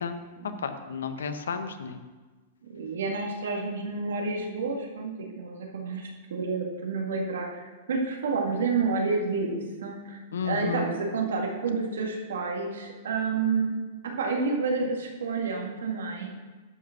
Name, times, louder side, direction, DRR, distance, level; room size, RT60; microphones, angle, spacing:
voice 1, 0.6-2.0 10.3-10.9, left 6 dB, 90° left, 9 dB, 1.0 m, -32 dB
voice 2, 2.7-13.7 14.0-16.4, right 4 dB, 85° right, 0 dB, 2.1 m, -30 dB
11.0 x 5.2 x 6.6 m, 1.3 s
hypercardioid pair, 135°, 0 cm